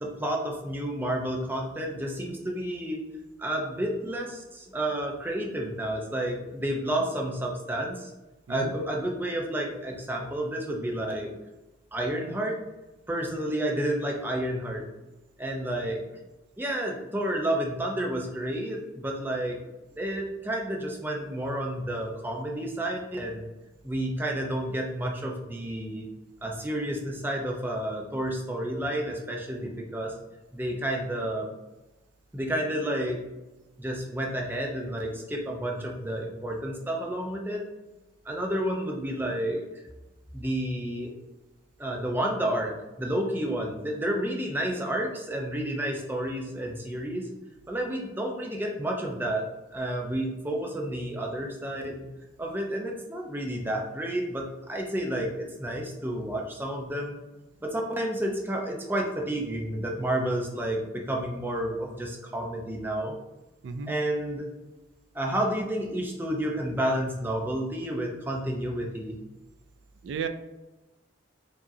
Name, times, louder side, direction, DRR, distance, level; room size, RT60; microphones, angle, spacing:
voice 1, 0.0-3.1 3.4-8.1 8.5-11.3 11.9-12.6 13.1-14.9 15.4-16.0 16.6-19.6 19.9-23.5 23.8-26.1 26.4-30.2 30.5-31.6 32.3-33.2 33.8-37.6 38.2-39.7 40.3-41.1 41.8-47.3 47.7-52.1 52.4-57.2 57.6-63.2 63.9-64.5 65.1-69.2, right 1 dB, 10° right, 0 dB, 0.5 m, -30 dB
voice 2, 8.5-8.7 63.6-63.9 70.0-70.3, right 6 dB, 65° right, 9 dB, 0.3 m, -33 dB
4.7 x 2.8 x 2.7 m, 1.1 s
head